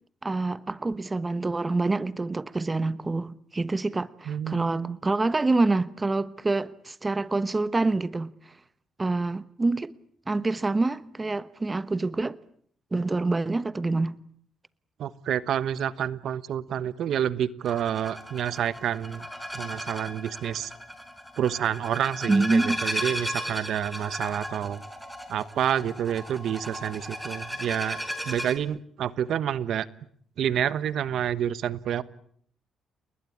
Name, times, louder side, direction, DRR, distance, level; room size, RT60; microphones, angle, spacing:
voice 1, 0.2-8.5 9.0-9.9 10.3-12.4 12.9-14.2 22.3-22.8, right 3 dB, 20° right, 1.1 m, -26 dB
voice 2, 4.3-5.0 15.0-19.3 19.5-20.7 21.4-24.8 25.3-28.0 28.3-29.9 30.4-32.0, right 9 dB, 70° right, 1.1 m, -28 dB
sound 1, 17.6-28.6, equal, ahead, 5.4 m, -36 dB
30.0 x 20.5 x 8.7 m
cardioid pair, 90°, 0 cm